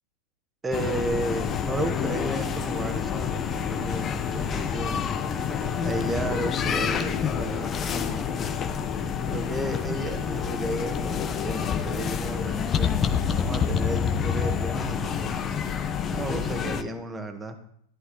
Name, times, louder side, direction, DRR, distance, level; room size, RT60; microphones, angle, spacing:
voice 1, 0.6-5.1 5.8-8.4 9.3-12.9 13.3-15.4 16.1-17.6, right 1 dB, 15° right, 6 dB, 1.6 m, -33 dB
sound 1, 0.7-16.8, left 7 dB, 25° left, 0.9 m, -28 dB
14.5 x 11.0 x 3.9 m, 0.68 s
figure-of-eight pair, 90°, 0 cm